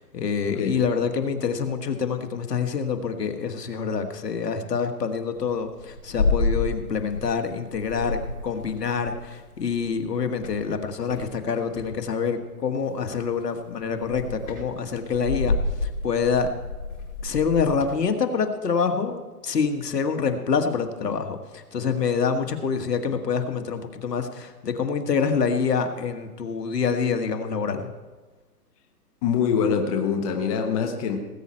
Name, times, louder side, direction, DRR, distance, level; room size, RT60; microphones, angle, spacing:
voice 1, 0.0-15.6 15.8-16.5 17.2-27.9, left 6 dB, 90° left, 7 dB, 1.7 m, -26 dB
sound 1, 5.4-7.4 7.7-10.0 10.4-11.9 13.0-13.4 13.8-18.0, left 3 dB, 55° left, 5.2 m, -29 dB
voice 2, 29.2-31.2, left 7 dB, 25° left, 4 dB, 1.2 m, -24 dB
19.0 x 8.8 x 4.4 m, 1.3 s
hypercardioid pair, 155°, 47 cm